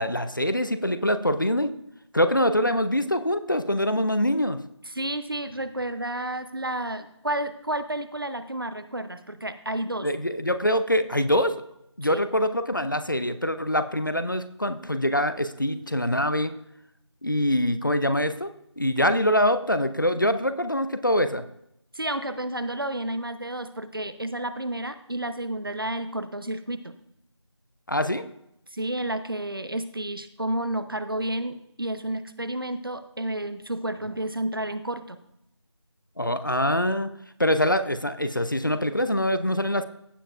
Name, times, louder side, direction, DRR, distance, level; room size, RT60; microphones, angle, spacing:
voice 1, 0.0-1.7 2.1-4.6 10.0-11.6 12.0-16.5 17.2-21.4 27.9-28.2 36.2-37.1 37.4-39.8, left 1 dB, 45° left, 11 dB, 0.5 m, -24 dB
voice 2, 4.9-10.1 12.1-12.2 20.2-20.3 21.9-26.9 28.7-35.2, right 1 dB, 50° right, 11 dB, 0.7 m, -31 dB
16.0 x 6.9 x 2.4 m, 0.77 s
figure-of-eight pair, 175°, 15 cm